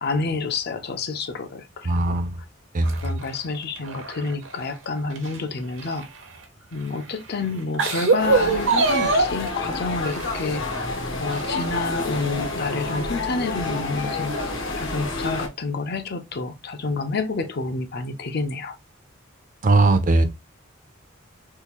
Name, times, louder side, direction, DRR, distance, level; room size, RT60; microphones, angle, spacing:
voice 1, 0.0-2.2 3.0-6.1 6.7-10.6 11.2-18.8, left 3 dB, 55° left, 0.5 m, -29 dB
voice 2, 1.8-2.4 2.7-3.0 19.6-20.2, right 2 dB, 40° right, 0.5 m, -19 dB
sound 1, 2.8-4.7 5.1-6.4 7.1-7.2 7.6-9.5 10.1-10.8 11.3-12.0 12.4-12.5 13.6-13.7, right 4 dB, 65° right, 0.8 m, -24 dB
sound 2, 8.2-15.5, left 2 dB, 70° left, 0.9 m, -29 dB
3.7 x 2.4 x 2.9 m
head